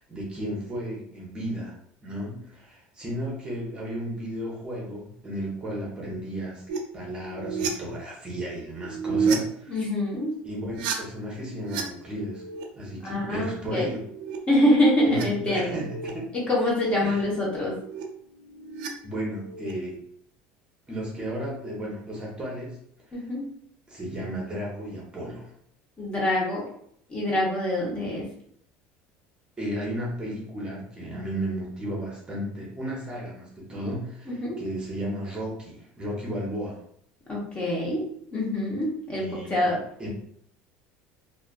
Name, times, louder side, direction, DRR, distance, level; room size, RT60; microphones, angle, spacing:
voice 1, 0.0-1.7 2.0-6.6 6.9-9.8 10.4-12.4 12.7-14.0 15.1-16.3 17.0-17.3 19.0-20.0 20.9-22.8 23.1-23.2 23.9-25.5 29.6-36.8 39.1-39.7 40.0-40.1, equal, 20° right, -4 dB, 0.8 m, -34 dB
sound 1, 6.7-6.8 7.1-7.7 8.8-9.4 10.6-11.8 12.1-12.6 13.7-15.2 15.6-16.1 17.4-18.9 19.2-19.7, right 5 dB, 85° right, 0.4 m, -32 dB
voice 2, 9.7-10.4 13.0-13.9 14.5-15.7 16.5-17.7 23.1-23.4 26.0-26.6 27.1-28.2 34.3-34.6 37.3-38.1 38.3-39.8, left 1 dB, 25° left, -4 dB, 0.8 m, -25 dB
2.4 x 2.3 x 2.2 m, 0.67 s
supercardioid pair, 125°, 5 cm